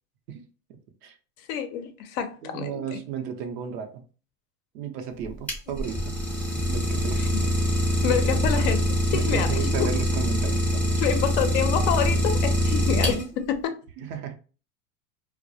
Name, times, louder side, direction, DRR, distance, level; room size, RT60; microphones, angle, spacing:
voice 1, 1.5-3.0 7.2-7.3 8.0-9.9 11.0-13.8, left 8 dB, 55° left, 0.5 m, -28 dB
voice 2, 2.4-4.1 4.7-6.2 6.7-7.6 8.1-8.5 9.1-11.0 14.0-14.4, right 7 dB, 80° right, 0.7 m, -34 dB
Idling, 5.2-13.5, equal, 5° left, 0.6 m, -24 dB
2.2 x 2.1 x 2.6 m
supercardioid pair, 125°, 47 cm